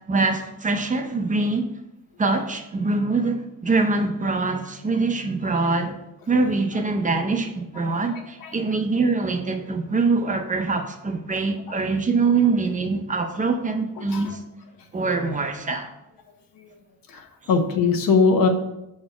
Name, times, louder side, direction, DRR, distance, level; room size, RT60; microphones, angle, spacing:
voice 1, 0.1-1.7 2.2-5.9 6.3-14.4 14.9-15.9, right 3 dB, 20° right, 6 dB, 0.6 m, -24 dB
voice 2, 7.7-8.7 11.7-11.8 14.0-14.4 16.6-16.8 17.1-18.5, left 5 dB, 70° left, 4 dB, 1.0 m, -23 dB
6.8 x 4.3 x 5.9 m, 0.89 s
cardioid pair, 160°, 36 cm